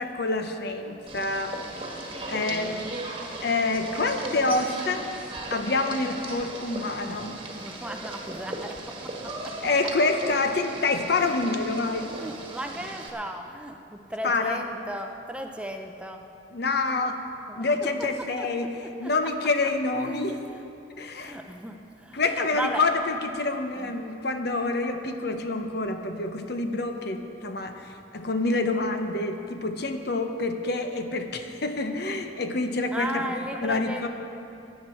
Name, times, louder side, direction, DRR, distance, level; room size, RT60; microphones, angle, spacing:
voice 1, 0.0-1.5 2.3-2.8 3.4-5.0 5.5-7.4 9.6-12.1 14.2-14.6 16.5-17.2 17.5-20.4 21.0-21.4 22.1-34.1, left 3 dB, 60° left, 6 dB, 0.9 m, -27 dB
sound 1, 1.1-13.1, right 2 dB, 25° right, 1.5 m, -37 dB
voice 2, 2.4-2.8 7.1-7.2 7.6-9.5 11.1-11.3 12.0-16.2 17.5-17.6 18.4-18.5 19.0-19.1 20.0-20.7 21.2-22.8 23.7-23.9 32.9-34.1, right 1 dB, 5° right, 4 dB, 0.5 m, -36 dB
16.0 x 10.5 x 4.4 m, 2.7 s
head